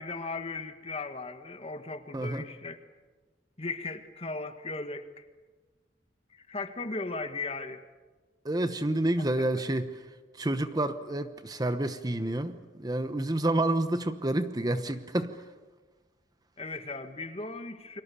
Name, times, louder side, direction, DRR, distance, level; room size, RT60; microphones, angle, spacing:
voice 1, 0.0-2.8 3.6-5.2 6.3-7.8 16.6-18.0, left 3 dB, 35° left, 8 dB, 1.6 m, -37 dB
voice 2, 2.1-2.4 8.4-9.9 10.4-15.4, right 1 dB, 20° right, 10 dB, 1.0 m, -29 dB
29.5 x 23.5 x 7.0 m, 1.3 s
head